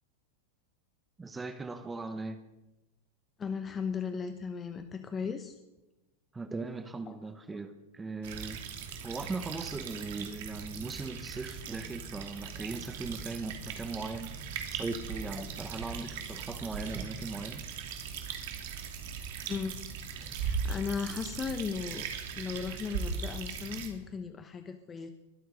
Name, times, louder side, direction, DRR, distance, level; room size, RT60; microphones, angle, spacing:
voice 1, 1.2-2.4 6.3-8.6 9.0-14.3 14.7-17.6 20.2-20.3, right 3 dB, 15° right, 9 dB, 1.1 m, -39 dB
voice 2, 3.4-5.6 7.1-7.2 7.5-7.6 15.4-15.5 19.5-19.8 20.3-22.1 22.4-25.1, left 6 dB, 25° left, 8 dB, 1.0 m, -36 dB
sound 1, 8.2-23.9, right 6 dB, 65° right, 2.6 m, -39 dB
22.0 x 7.8 x 5.2 m, 1.0 s
hypercardioid pair, 105°, 0 cm